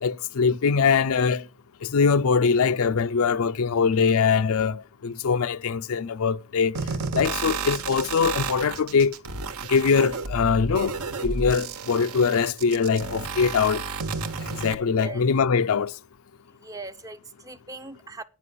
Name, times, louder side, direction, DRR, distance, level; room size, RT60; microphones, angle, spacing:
voice 1, 0.0-1.5 1.8-6.8 7.1-9.2 9.7-11.0 11.2-13.8 14.6-15.9, left 5 dB, 70° left, 0.5 m, -22 dB
sound 1, 6.7-14.7, right 4 dB, 80° right, 1.2 m, -32 dB
voice 2, 16.6-18.2, right 3 dB, 15° right, 0.5 m, -39 dB
9.4 x 5.7 x 8.3 m
head